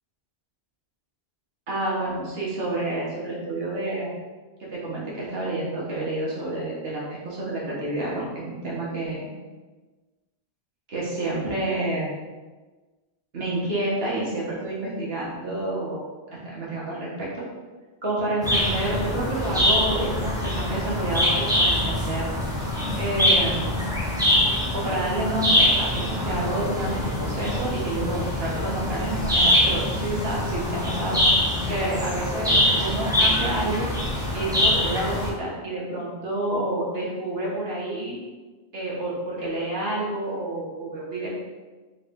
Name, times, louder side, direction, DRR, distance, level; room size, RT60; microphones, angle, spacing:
voice 1, 1.7-4.1 4.6-9.3 10.9-12.1 13.3-17.4 18.0-22.3 23.0-23.7 24.7-31.2 31.7-33.9 34.3-38.2 38.7-41.3, right 1 dB, 70° right, -5 dB, 1.5 m, -29 dB
sound 1, 18.4-35.3, left 1 dB, 5° right, 0.8 m, -24 dB
4.0 x 3.4 x 3.6 m, 1.3 s
omnidirectional pair, 1.1 m